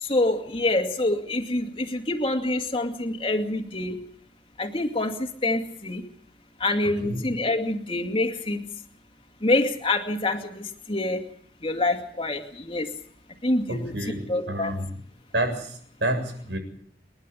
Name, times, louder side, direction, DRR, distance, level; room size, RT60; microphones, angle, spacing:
voice 1, 0.0-4.0 4.6-6.0 6.6-8.6 9.4-11.2 11.6-12.9 13.4-13.9 14.3-14.7, left 2 dB, 30° left, 4 dB, 2.3 m, -26 dB
voice 2, 13.7-14.9 15.3-16.6, right 1 dB, 90° right, 5 dB, 7.3 m, -29 dB
29.0 x 11.0 x 10.0 m, 0.63 s
head